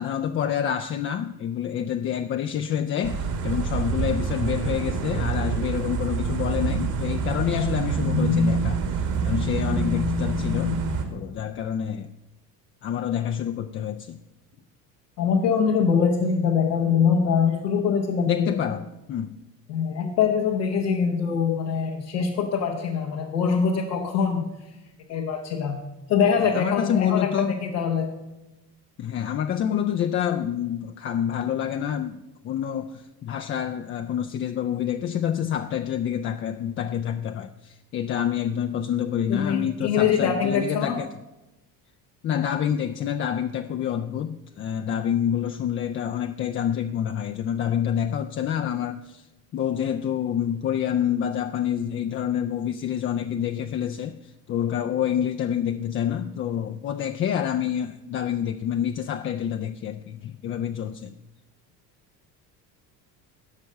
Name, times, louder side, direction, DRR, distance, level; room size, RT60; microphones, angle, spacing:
voice 1, 0.0-10.8 11.1-12.1 12.8-14.2 18.3-19.4 26.4-27.6 29.0-32.2 32.4-41.1 42.2-49.3 49.5-61.2, left 9 dB, 30° left, 0.3 m, -27 dB
sound 1, 3.0-11.0, right 3 dB, 60° right, 2.0 m, -26 dB
voice 2, 15.2-18.5 19.7-24.5 25.1-25.8 26.1-28.1 39.3-41.0, left 6 dB, 90° left, 1.1 m, -23 dB
12.5 x 5.3 x 6.5 m
hypercardioid pair, 70°, 49 cm